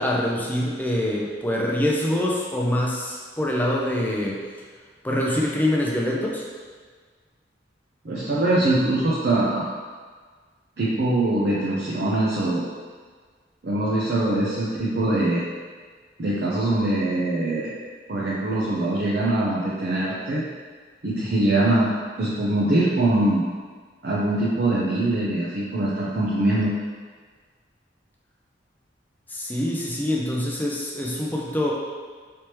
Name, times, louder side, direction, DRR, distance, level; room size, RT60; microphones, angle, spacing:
voice 1, 0.0-4.4 5.0-6.4 29.3-31.7, left 1 dB, 10° left, -3 dB, 0.4 m, -25 dB
voice 2, 8.0-9.6 10.8-12.6 13.6-15.4 16.2-17.7 18.1-20.4 21.0-21.9 22.2-23.4 24.0-26.7, right 1 dB, 60° right, -7 dB, 0.5 m, -23 dB
3.3 x 3.0 x 2.9 m, 1.6 s
head